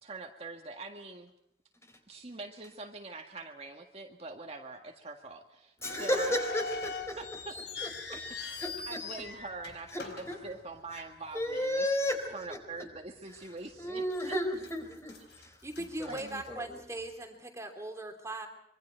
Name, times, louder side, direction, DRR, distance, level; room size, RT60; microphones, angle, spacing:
voice 1, 0.0-1.3 2.1-6.4 7.2-8.6 8.9-11.9 12.3-14.3 15.3-15.4 16.1-16.4, right 3 dB, 35° right, 3 dB, 1.8 m, -44 dB
sound 1, 5.8-11.1 11.4-11.5 12.3-12.5 12.9-13.0 13.6-14.2 14.6-17.1, left 4 dB, 75° left, 4.0 m, -42 dB
voice 2, 5.8-7.2 8.6-9.0 9.9-10.4 11.3-12.6 13.8-15.5 16.5-16.6, equal, 15° left, 5 dB, 4.3 m, -33 dB
voice 3, 15.6-18.5, right 1 dB, 15° right, 3 dB, 3.1 m, -39 dB
26.0 x 24.5 x 4.6 m, 0.75 s
head